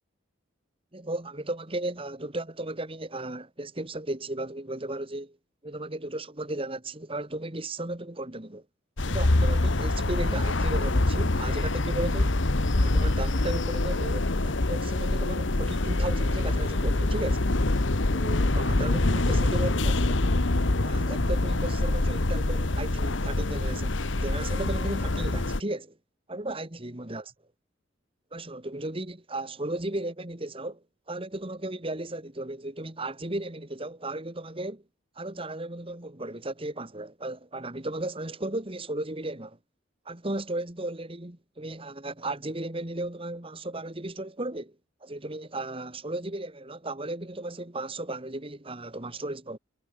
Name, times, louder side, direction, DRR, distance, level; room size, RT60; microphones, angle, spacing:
voice 1, 0.9-5.4 5.6-8.6 9.1-12.4 12.8-17.5 18.1-20.3 20.8-26.0 26.3-27.2 28.3-34.8 35.2-39.6 40.1-44.8 45.0-49.6, right 2 dB, 30° right, 2.1 m, -35 dB
sound 1, 9.0-25.6, left 2 dB, 70° left, 1.4 m, -25 dB
head